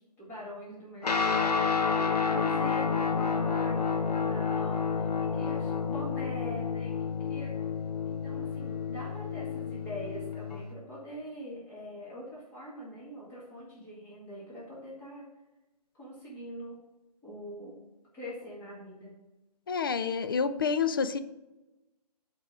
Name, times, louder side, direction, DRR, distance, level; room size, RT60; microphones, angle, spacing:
voice 1, 0.0-1.6 1.8-6.9 7.2-7.5 8.1-15.3 15.9-16.8 17.2-17.7 18.1-19.1, equal, 10° left, -7 dB, 2.1 m, -43 dB
Guitar, 1.0-10.7, left 5 dB, 70° left, 1.2 m, -30 dB
voice 2, 19.7-21.2, left 6 dB, 35° left, 12 dB, 0.4 m, -28 dB
7.9 x 4.8 x 4.8 m, 1.0 s
figure-of-eight pair, 150°, 21 cm